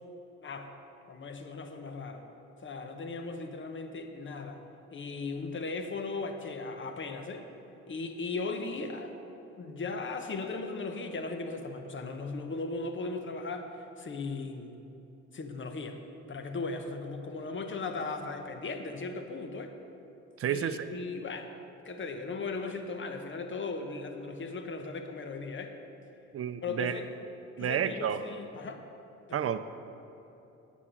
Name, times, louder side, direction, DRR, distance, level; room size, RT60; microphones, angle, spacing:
voice 1, 1.1-2.2 2.6-4.6 4.9-7.5 7.9-9.1 9.6-13.7 14.0-14.7 15.3-16.0 16.3-19.8 20.5-21.5 21.8-25.7 26.6-27.1 27.6-28.8 29.3-29.5, left 3 dB, 40° left, 6 dB, 1.0 m, -37 dB
voice 2, 20.4-20.9 26.3-26.9 27.6-28.2 29.3-29.6, right 9 dB, 50° right, 11 dB, 0.6 m, -30 dB
8.5 x 7.1 x 6.0 m, 2.9 s
supercardioid pair, 65°, 30 cm